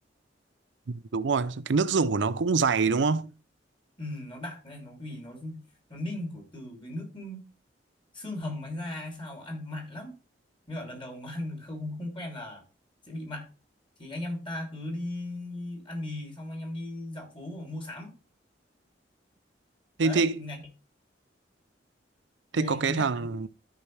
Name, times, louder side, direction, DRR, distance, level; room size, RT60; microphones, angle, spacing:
voice 1, 0.9-3.3 20.0-20.4 22.5-23.5, right 4 dB, 85° right, 0.5 m, -25 dB
voice 2, 4.0-5.6 5.9-7.4 8.1-10.1 10.7-12.6 13.1-13.5 14.0-18.1 20.0-20.6 22.5-23.5, left 1 dB, 30° left, 2.9 m, -37 dB
14.0 x 4.9 x 3.2 m
head